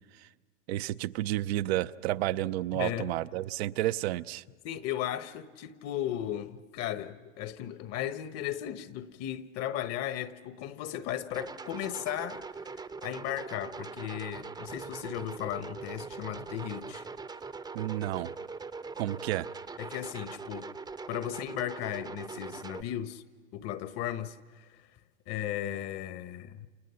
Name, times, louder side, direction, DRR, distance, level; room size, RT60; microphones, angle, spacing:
voice 1, 0.7-4.4 17.7-18.3 19.0-19.5, right 15 dB, 65° right, 0.8 m, -31 dB
voice 2, 2.7-3.1 4.6-12.4 13.0-17.1 19.8-20.7 21.1-23.2 23.5-24.8 25.3-26.7, left 11 dB, 45° left, 1.4 m, -36 dB
sound 1, 11.3-22.8, right 4 dB, 10° right, 0.8 m, -42 dB
29.5 x 28.5 x 5.8 m
hypercardioid pair, 100°, 34 cm